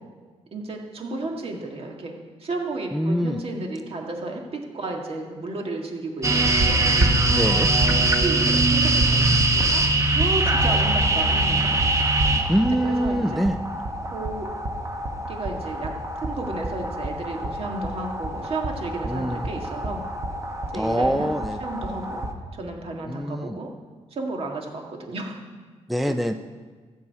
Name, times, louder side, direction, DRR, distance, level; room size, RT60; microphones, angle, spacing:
voice 1, 0.5-2.1 2.4-7.1 7.8-7.9 8.2-11.8 12.8-13.5 14.1-14.5 15.3-15.9 16.2-20.0 20.7-21.4 21.6-23.7 24.1-25.4 26.0-26.1, right 2 dB, 55° right, 1 dB, 1.8 m, -33 dB
voice 2, 2.9-3.4 7.3-7.7 12.5-13.6 19.1-19.5 20.7-21.6 23.1-23.6 25.9-26.3, equal, ahead, 7 dB, 0.4 m, -24 dB
sound 1, 6.2-22.3, right 2 dB, 25° right, 1.1 m, -23 dB
14.0 x 4.9 x 8.3 m, 1.5 s
cardioid pair, 110°, 12 cm